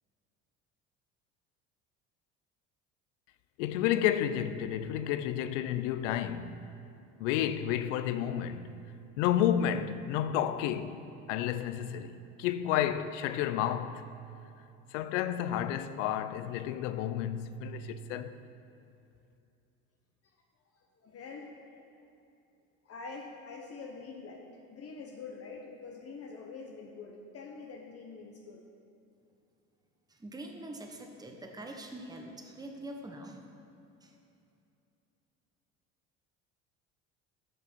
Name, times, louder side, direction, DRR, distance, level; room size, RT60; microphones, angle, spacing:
voice 1, 3.6-6.6 7.2-8.8 9.2-11.0 11.3-14.0 14.9-18.3, left 10 dB, 80° left, 0.5 m, -31 dB
voice 2, 20.7-21.8 22.8-28.6, left 4 dB, 40° left, 0.9 m, -45 dB
voice 3, 30.1-33.4 34.0-34.2, right 1 dB, 10° right, 1.0 m, -44 dB
7.0 x 6.0 x 5.8 m
hypercardioid pair, 75°, 36 cm